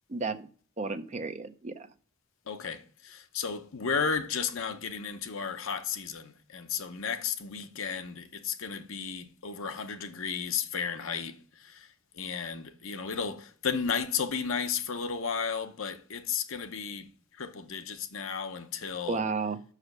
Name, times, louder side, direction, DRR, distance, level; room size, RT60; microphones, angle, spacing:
voice 1, 0.1-0.5 0.8-1.9 19.1-19.6, right 4 dB, 30° right, 0.6 m, -32 dB
voice 2, 2.5-11.9 12.1-17.1 17.4-19.2, left 6 dB, 65° left, 0.8 m, -33 dB
6.4 x 5.0 x 6.4 m
head